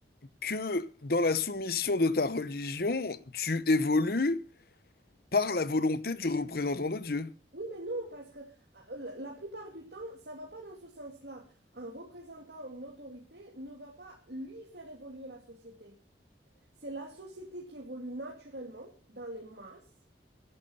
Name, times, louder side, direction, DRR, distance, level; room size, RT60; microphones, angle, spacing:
voice 1, 0.4-4.5 5.3-7.3, left 3 dB, 55° left, 0.9 m, -29 dB
voice 2, 7.5-16.0 16.8-19.9, right 1 dB, 70° right, 2.6 m, -43 dB
13.5 x 11.0 x 5.5 m
head